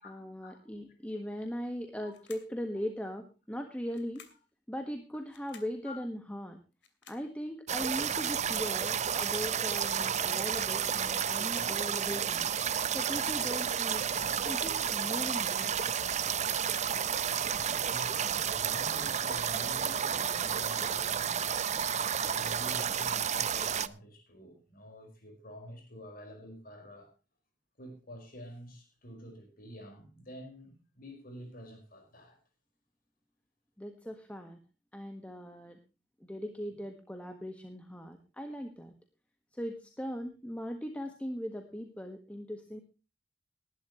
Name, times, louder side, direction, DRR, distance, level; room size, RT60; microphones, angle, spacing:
voice 1, 0.0-4.2 4.7-6.6 7.1-12.5 12.9-14.1 14.4-15.8 33.8-34.6 34.9-35.8 36.2-38.9 39.5-42.8, equal, 10° left, 1.5 m, -39 dB
sound 1, 2.1-2.6 3.9-4.5 5.3-5.8 6.7-7.3 8.2-8.9, left 7 dB, 70° left, 2.8 m, -55 dB
sound 2, 7.7-23.9, right 8 dB, 40° right, 0.7 m, -31 dB
voice 2, 17.9-21.7 22.1-27.1 27.8-32.4, equal, 55° left, 5.1 m, -48 dB
19.5 x 11.5 x 3.1 m
head